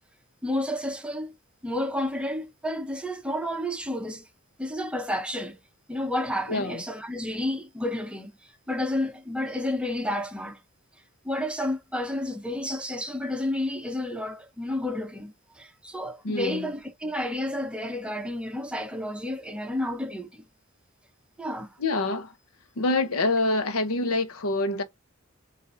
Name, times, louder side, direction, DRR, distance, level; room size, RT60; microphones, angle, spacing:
voice 1, 0.4-1.4 1.6-4.2 4.6-5.6 5.9-8.4 8.7-10.6 11.2-20.4 21.4-21.7, left 1 dB, 5° right, 0.7 m, -31 dB
voice 2, 6.5-6.8 16.2-16.7 21.8-22.3 22.8-24.8, left 2 dB, 85° left, 0.9 m, -26 dB
7.3 x 2.6 x 2.6 m
head